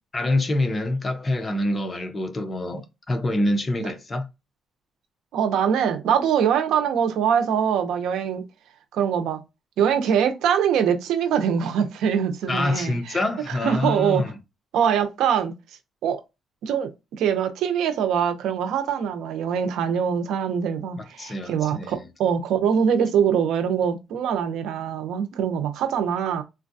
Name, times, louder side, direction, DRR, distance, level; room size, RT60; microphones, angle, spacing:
voice 1, 0.1-4.2 12.5-14.3 21.2-21.9, left 1 dB, 30° left, 0.7 m, -26 dB
voice 2, 5.3-8.4 8.9-9.4 9.8-13.2 13.5-14.2 14.7-15.5 16.0-16.2 16.6-26.4, right 8 dB, 85° right, 0.6 m, -23 dB
3.9 x 2.2 x 2.6 m
cardioid pair, 90°, 0 cm